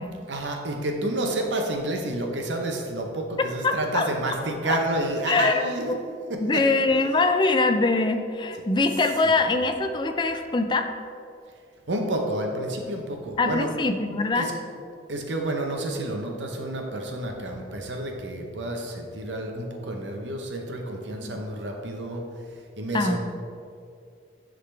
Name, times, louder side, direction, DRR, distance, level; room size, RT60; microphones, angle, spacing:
voice 1, 0.0-5.9 6.3-6.8 9.2-9.4 11.9-13.7 14.3-14.5 15.1-23.2, right 1 dB, 90° right, 2 dB, 0.8 m, -30 dB
voice 2, 3.6-4.1 5.3-5.6 5.9-6.0 6.4-10.9 13.4-14.5 22.9-23.2, left 3 dB, 25° left, 6 dB, 0.4 m, -23 dB
10.0 x 3.8 x 3.3 m, 2.3 s
head